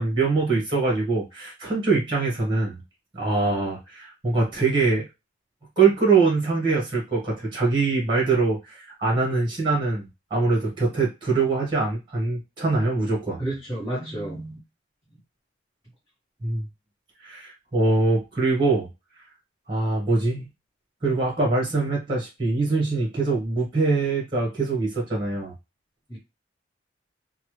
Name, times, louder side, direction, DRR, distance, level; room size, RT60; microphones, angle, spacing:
voice 1, 0.0-2.8 3.1-5.0 5.8-10.0 10.3-13.4 16.4-16.6 17.2-18.9 19.7-20.5 21.0-25.5, right 3 dB, 25° right, 1.1 m, -23 dB
voice 2, 13.4-14.6 26.1-26.2, right 1 dB, 15° left, 1.0 m, -31 dB
3.1 x 2.1 x 3.1 m
head